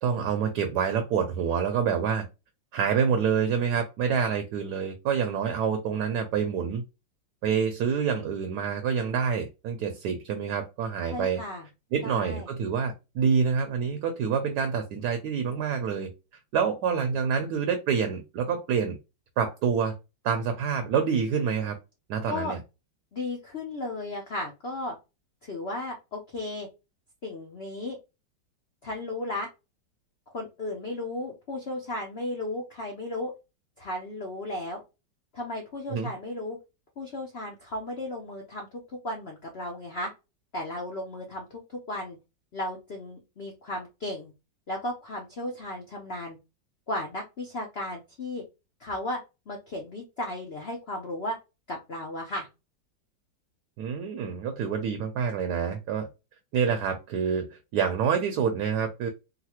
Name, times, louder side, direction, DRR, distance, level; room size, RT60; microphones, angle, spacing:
voice 1, 0.0-2.3 2.7-6.8 7.4-11.4 11.9-16.1 16.5-19.0 19.4-20.0 20.2-21.8 22.1-22.6 35.9-36.1 53.8-56.1 56.5-59.1, right 6 dB, 70° right, 6 dB, 1.1 m, -27 dB
voice 2, 11.1-11.7 12.0-12.5 22.3-22.6 23.1-24.9 25.5-26.7 27.2-28.0 28.8-29.5 30.3-33.3 33.8-34.8 35.3-36.6 37.0-40.1 40.5-42.2 42.5-44.3 44.7-46.4 46.9-48.4 48.8-49.2 49.5-51.4 51.7-52.5, left 1 dB, 60° left, 1 dB, 0.6 m, -35 dB
4.0 x 2.2 x 2.8 m, 0.27 s
omnidirectional pair, 2.0 m